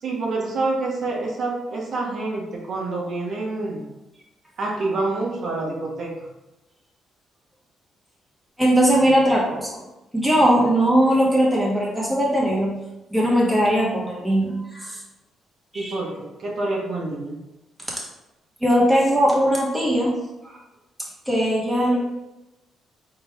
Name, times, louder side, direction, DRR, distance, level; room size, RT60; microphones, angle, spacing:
voice 1, 0.0-3.9 4.6-6.1 15.7-17.4, right 2 dB, 60° right, -2 dB, 1.1 m, -27 dB
voice 2, 8.6-9.8 10.1-12.8 13.1-15.0 15.7-16.0 18.6-20.1 20.4-20.6 21.3-22.0, equal, 5° right, -4 dB, 1.3 m, -19 dB
4.2 x 3.3 x 3.5 m, 0.98 s
cardioid pair, 90°, 0 cm